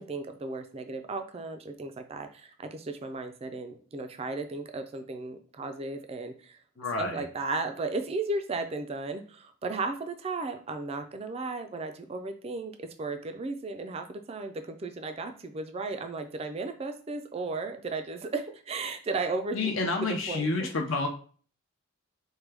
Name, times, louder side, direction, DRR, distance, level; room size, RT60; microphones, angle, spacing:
voice 1, 0.0-6.6 7.0-20.7, right 3 dB, 30° right, 7 dB, 0.4 m, -35 dB
voice 2, 6.8-7.2 19.5-21.1, left 3 dB, 70° left, 1 dB, 0.6 m, -29 dB
4.6 x 2.2 x 3.3 m, 0.42 s
head